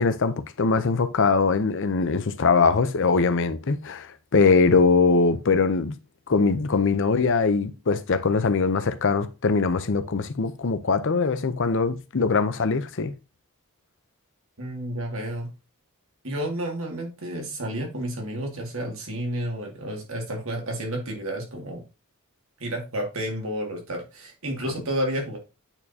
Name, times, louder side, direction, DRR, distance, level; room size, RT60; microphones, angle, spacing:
voice 1, 0.0-5.9 6.3-13.1, left 4 dB, 60° left, 0.7 m, -22 dB
voice 2, 14.6-15.5 16.2-21.8 22.6-25.4, right 1 dB, 65° right, 2.2 m, -31 dB
8.9 x 4.5 x 2.8 m
head